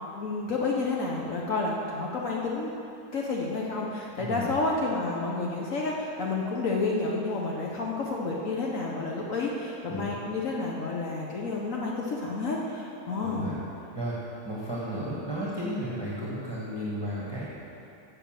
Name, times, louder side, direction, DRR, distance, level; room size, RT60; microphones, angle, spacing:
voice 1, 0.1-2.7 3.1-13.5, left 3 dB, 60° left, -2 dB, 1.2 m, -30 dB
voice 2, 4.2-4.5 9.9-10.1 13.2-13.6 13.9-14.2 14.4-17.5, right 1 dB, 15° right, -8 dB, 1.3 m, -33 dB
7.0 x 6.9 x 7.4 m, 2.8 s
omnidirectional pair, 1.7 m